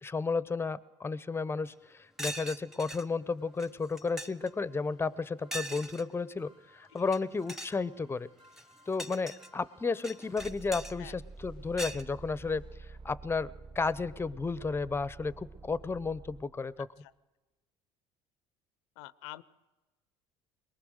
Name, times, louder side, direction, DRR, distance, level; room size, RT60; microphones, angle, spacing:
voice 1, 0.0-8.3 8.9-12.6 13.0-16.9, left 4 dB, 20° left, 18 dB, 0.7 m, -33 dB
sound 1, 1.4-1.5 1.8-1.9 2.4-16.8, right 3 dB, 35° right, 1.9 m, -52 dB
sound 2, 1.7-1.8 2.2-3.0 3.6-3.7 4.0-4.5 5.5-6.0 7.0-7.2 7.5-7.8 8.4-9.5 10.0-10.9 11.8-12.0, equal, 5° right, 1.0 m, -40 dB
voice 2, 16.8-17.1 19.0-19.4, left 17 dB, 85° left, 18 dB, 0.7 m, -47 dB
22.5 x 19.5 x 6.5 m, 1.1 s
supercardioid pair, 85°, 13 cm